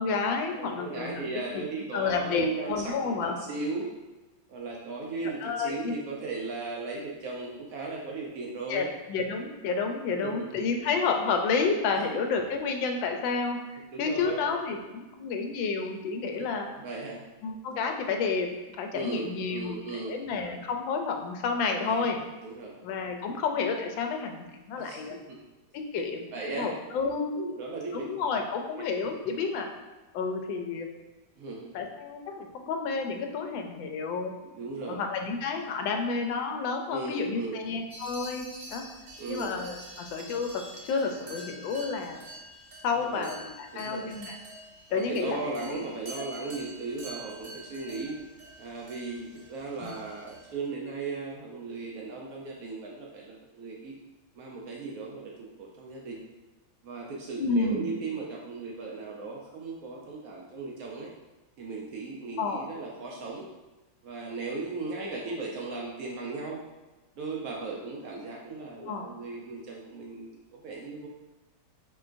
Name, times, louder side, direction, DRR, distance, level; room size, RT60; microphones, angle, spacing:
voice 1, 0.0-1.2 1.5-1.6 1.9-3.3 5.4-5.9 8.7-13.6 14.0-16.7 17.4-18.5 18.8-22.2 22.8-25.1 25.7-26.3 26.6-27.4 27.9-29.7 30.1-30.9 31.7-34.3 34.8-38.4 38.7-38.8 39.3-42.2 42.8-44.4 44.9-45.7 46.2-46.3 49.8-49.9 57.4-57.9 62.4-62.6 68.9-69.1, left 4 dB, 80° left, 4 dB, 1.3 m, -30 dB
voice 2, 0.5-3.9 4.5-8.9 10.2-10.5 13.9-14.4 16.8-17.3 18.9-20.2 21.7-22.1 22.4-22.8 24.8-25.0 25.3-25.4 26.3-26.7 27.3-28.1 31.4-31.7 34.5-35.0 36.9-37.6 39.2-39.6 42.9-43.3 43.7-44.1 44.9-48.2 48.6-53.9 54.4-56.2 56.8-61.1 61.6-63.5 64.0-66.6 67.2-71.1, right 3 dB, 75° right, -2 dB, 0.8 m, -37 dB
sound 1, 37.9-50.5, right 1 dB, 40° right, 0.6 m, -46 dB
4.6 x 3.8 x 2.5 m, 1.1 s
omnidirectional pair, 2.1 m